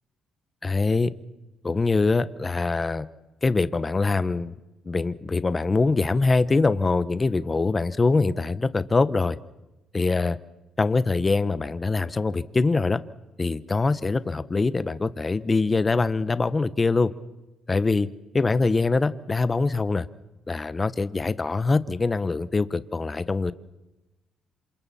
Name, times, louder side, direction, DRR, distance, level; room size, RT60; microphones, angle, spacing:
voice 1, 0.6-1.1 1.6-3.1 3.4-4.5 4.8-9.4 9.9-10.4 10.8-13.0 13.4-17.1 17.7-18.1 18.3-20.1 20.5-23.5, left 3 dB, 25° left, 14 dB, 1.0 m, -23 dB
28.0 x 27.0 x 4.3 m, 1.0 s
cardioid pair, 90°, 0 cm